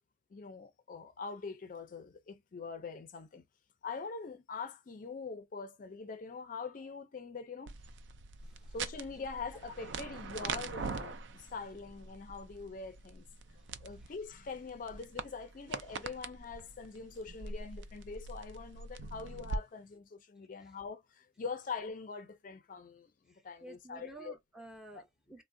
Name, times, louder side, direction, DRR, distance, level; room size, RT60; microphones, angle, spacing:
voice 1, 0.3-3.4 3.8-7.7 8.7-13.3 13.8-24.3, left 4 dB, 45° left, 0.4 m, -43 dB
sound 1, 7.7-19.6, right 4 dB, 85° right, 0.4 m, -43 dB
voice 2, 8.4-8.7 9.3-9.4 13.5-14.1 20.6-20.7 23.3-25.4, right 2 dB, 5° right, 0.6 m, -53 dB
3.5 x 2.1 x 2.5 m
head